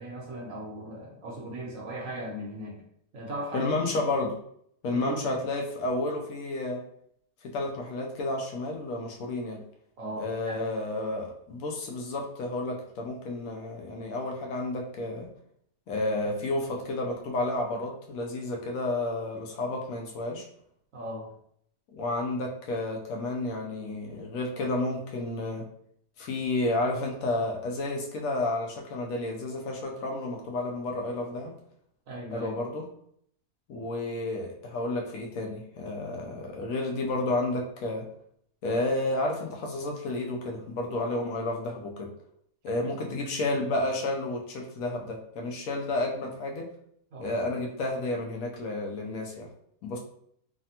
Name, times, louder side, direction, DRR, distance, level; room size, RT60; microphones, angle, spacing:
voice 1, 0.0-2.8 3.1-3.7 4.9-5.4 10.0-10.6 20.9-21.3 32.1-32.5 43.0-43.1 47.1-47.4, right 1 dB, 65° right, -2 dB, 1.1 m, -38 dB
voice 2, 3.5-4.4 4.8-6.8 7.4-9.6 10.2-15.3 15.9-20.5 21.9-25.7 26.2-31.5 32.3-32.8 33.7-38.0 38.6-42.1 42.6-46.7 47.2-49.5 49.8-50.0, left 2 dB, 70° left, 1 dB, 0.9 m, -31 dB
3.2 x 2.1 x 2.7 m, 0.68 s
omnidirectional pair, 1.6 m